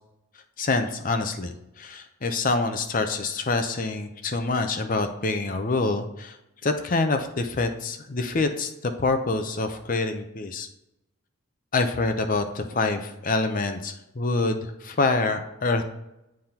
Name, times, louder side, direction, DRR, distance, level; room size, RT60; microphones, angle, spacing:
voice 1, 0.6-6.4 6.6-10.7 11.7-15.8, left 3 dB, 40° left, 7 dB, 0.6 m, -26 dB
9.6 x 3.6 x 2.9 m, 0.86 s
head